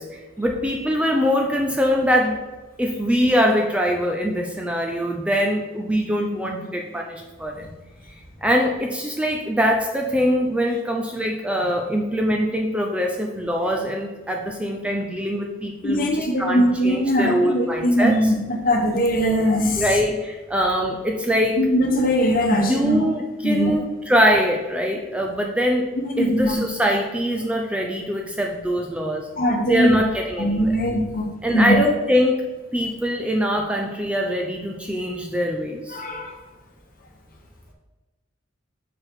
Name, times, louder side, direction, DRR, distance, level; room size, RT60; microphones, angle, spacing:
voice 1, 0.0-2.4 2.8-7.7 8.4-18.2 19.8-21.6 22.7-25.9 26.2-29.3 29.7-30.8 31.4-36.0, equal, 5° right, 1 dB, 0.4 m, -23 dB
voice 2, 15.8-19.8 21.6-23.0 23.4-23.7 26.1-26.6 29.4-30.0 30.4-31.9 35.9-36.4, equal, 45° left, 1 dB, 1.2 m, -21 dB
5.9 x 4.6 x 4.7 m, 1.2 s
head